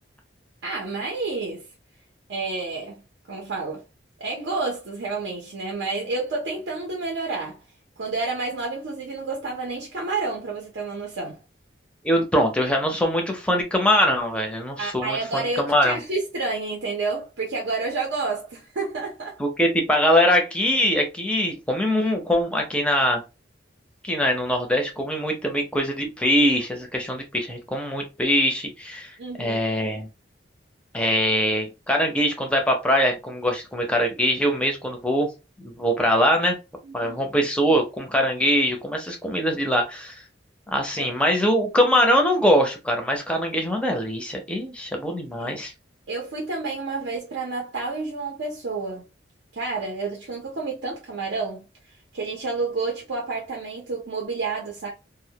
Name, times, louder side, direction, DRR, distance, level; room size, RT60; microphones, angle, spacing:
voice 1, 0.6-1.6 2.3-3.0 3.3-3.8 4.2-7.6 8.0-11.4 14.8-19.4 29.2-29.6 36.8-37.2 37.7-37.8 40.9-41.1 45.4-45.5 46.1-49.1 49.5-51.7 52.1-54.9, right 3 dB, 75° right, 0.6 m, -29 dB
voice 2, 12.0-16.0 19.4-23.2 24.0-30.1 30.9-35.3 35.6-36.6 36.9-40.2 40.7-45.7, equal, 5° left, 0.5 m, -22 dB
2.2 x 2.1 x 2.7 m
head